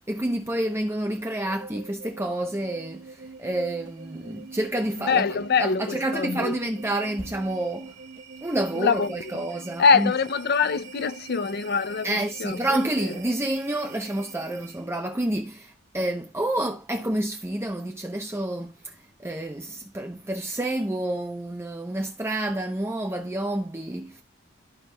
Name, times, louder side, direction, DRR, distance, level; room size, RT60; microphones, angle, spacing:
voice 1, 0.1-5.3 5.6-8.0 8.4-10.1 12.0-18.9 19.2-24.2, right 1 dB, 15° right, 0.8 m, -29 dB
sound 1, 1.1-15.0, right 5 dB, 60° right, 1.6 m, -45 dB
voice 2, 5.1-6.6 8.8-9.1 9.8-12.6, left 5 dB, 55° left, 0.5 m, -23 dB
14.0 x 4.7 x 2.3 m
head